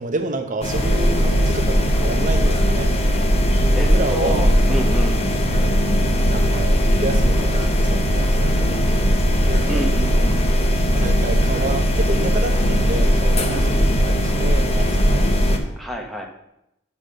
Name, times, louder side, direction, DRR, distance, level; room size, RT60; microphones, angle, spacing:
voice 1, 0.0-2.9 3.7-4.6 5.4-5.9 6.3-8.8 9.5-9.8 10.1-10.3 10.9-15.3, right 2 dB, 40° right, 6 dB, 0.8 m, -29 dB
sound 1, 0.6-15.6, equal, 30° left, 1.0 m, -18 dB
voice 2, 3.4-5.2 9.7-10.4 13.5-13.8 15.8-16.3, equal, ahead, 2 dB, 0.9 m, -29 dB
7.0 x 6.1 x 6.4 m, 0.83 s
head